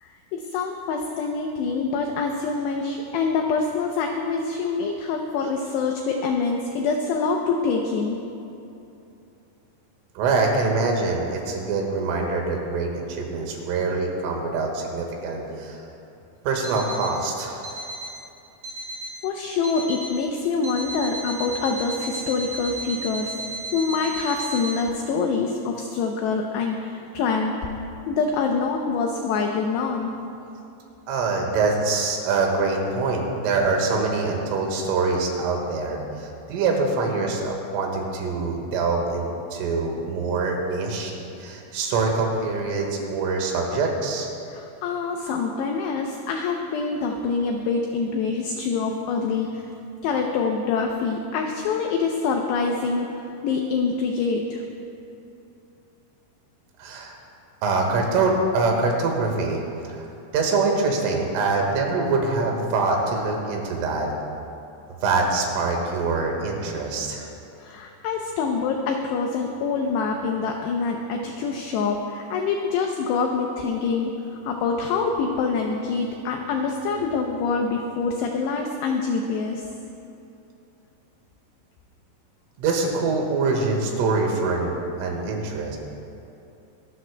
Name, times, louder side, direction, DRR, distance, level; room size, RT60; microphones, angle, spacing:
voice 1, 0.0-8.2 19.2-23.3 23.7-27.6 28.1-30.1 44.5-49.7 50.0-54.6 67.6-79.7, left 4 dB, 85° left, 2 dB, 2.4 m, -25 dB
voice 2, 10.2-15.8 16.5-17.6 31.1-44.3 56.8-57.2 57.6-60.0 60.3-64.1 65.0-67.3 82.6-85.8, right 3 dB, 85° right, 1 dB, 4.1 m, -24 dB
Alarm, 16.6-17.2 17.6-18.2 18.6-19.2 19.6-20.2 20.6-24.8, right 3 dB, 65° right, 3.9 m, -34 dB
24.0 x 13.0 x 2.2 m, 2.8 s
omnidirectional pair, 5.7 m